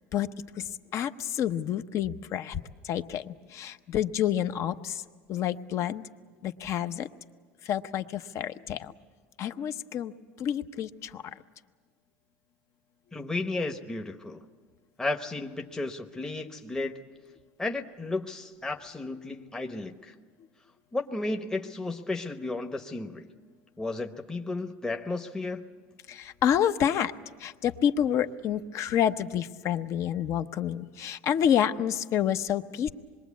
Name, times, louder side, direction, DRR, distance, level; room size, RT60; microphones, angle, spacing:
voice 1, 0.6-5.0 5.3-6.1 6.4-7.1 7.6-8.9 9.4-10.1 10.4-11.2 26.1-27.1 27.4-32.9, left 9 dB, 45° left, 10 dB, 0.9 m, -28 dB
voice 2, 13.1-14.4 15.0-16.9 17.6-20.1 20.9-23.3 23.8-25.6, left 2 dB, 10° left, 3 dB, 1.0 m, -33 dB
26.5 x 22.0 x 8.3 m, 1.5 s
supercardioid pair, 130°, 7 cm